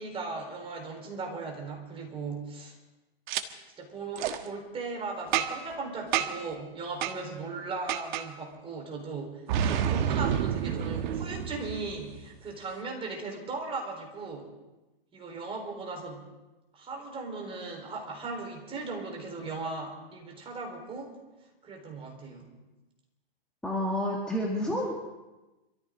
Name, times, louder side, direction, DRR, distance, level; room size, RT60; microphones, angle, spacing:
voice 1, 0.0-2.8 3.8-9.4 9.7-14.5 15.1-16.3 16.7-21.2 21.6-22.5, right 3 dB, 20° right, 0 dB, 4.1 m, -38 dB
Boom, 3.3-3.4 4.2-4.4 5.3-5.7 6.1-6.5 7.0-7.2 7.9-8.3 9.5-12.2, right 9 dB, 50° right, 1.3 m, -29 dB
voice 2, 23.6-24.9, left 1 dB, 5° left, -4 dB, 2.1 m, -29 dB
26.5 x 14.0 x 3.8 m, 1.1 s
hypercardioid pair, 130°, 30 cm